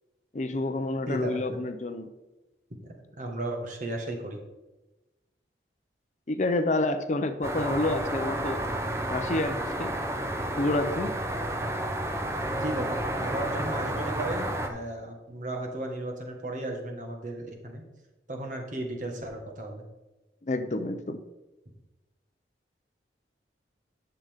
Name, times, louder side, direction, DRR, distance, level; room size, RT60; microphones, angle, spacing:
voice 1, 0.3-2.1 6.3-8.6 9.1-10.0 10.6-11.2 20.4-21.2, left 2 dB, 40° left, 9 dB, 0.6 m, -29 dB
voice 2, 1.1-1.6 2.8-4.4 12.5-17.8 18.3-19.8, right 1 dB, 45° right, 1 dB, 1.5 m, -35 dB
sound 1, 7.4-14.7, right 1 dB, 15° right, 0.8 m, -31 dB
11.0 x 6.9 x 3.6 m, 1.0 s
head